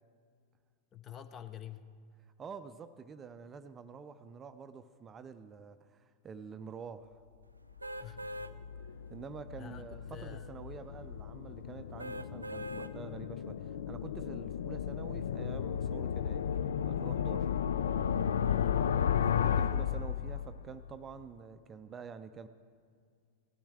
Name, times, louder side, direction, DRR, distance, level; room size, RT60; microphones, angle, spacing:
voice 1, 0.9-1.8 8.0-8.2 9.5-10.5 18.5-19.0, left 10 dB, 25° left, 12 dB, 0.6 m, -47 dB
voice 2, 2.4-7.1 9.1-16.5 16.9-17.6 19.3-22.5, right 6 dB, 20° right, 11 dB, 0.5 m, -47 dB
sound 1, 7.8-20.7, left 8 dB, 65° left, 0.3 m, -34 dB
sound 2, 7.8-8.5 9.1-9.2 12.0-12.9 13.5-13.6, equal, 85° right, 0.4 m, -41 dB
18.5 x 13.0 x 3.4 m, 2.2 s
figure-of-eight pair, 90°, 0 cm